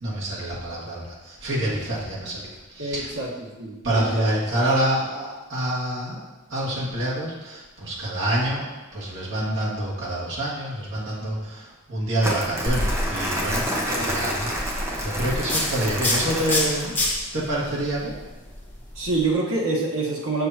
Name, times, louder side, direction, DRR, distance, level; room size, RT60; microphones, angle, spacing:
voice 1, 0.0-2.5 2.7-3.1 3.8-6.2 6.5-16.9 17.3-18.2, right 1 dB, 60° right, -6 dB, 1.9 m, -27 dB
voice 2, 2.8-4.3 13.9-14.1 19.0-20.5, right 3 dB, 85° right, -3 dB, 1.3 m, -26 dB
Crumpling crinkling, 12.2-17.1, equal, 15° right, 0.9 m, -29 dB
sound 1, 12.7-19.3, left 1 dB, 10° left, 1.4 m, -29 dB
6.6 x 6.3 x 2.9 m, 1.2 s
head